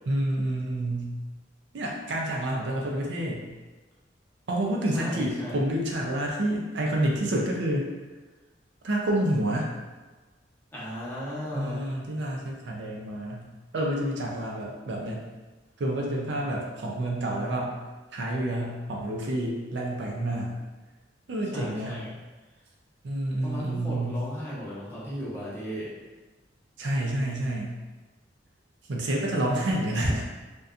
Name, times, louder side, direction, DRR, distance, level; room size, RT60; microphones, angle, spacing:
voice 1, 0.1-1.1 1.7-3.5 4.5-7.9 8.8-9.7 11.5-13.5 13.7-15.2 15.8-17.8 18.1-20.5 21.3-22.1 23.0-24.2 26.8-27.8 28.9-30.3, right 1 dB, 70° right, -1 dB, 0.4 m, -28 dB
voice 2, 4.9-5.6 10.7-11.8 21.5-22.1 23.4-25.9, equal, 10° left, -9 dB, 0.7 m, -36 dB
2.6 x 2.2 x 2.4 m, 1.2 s
head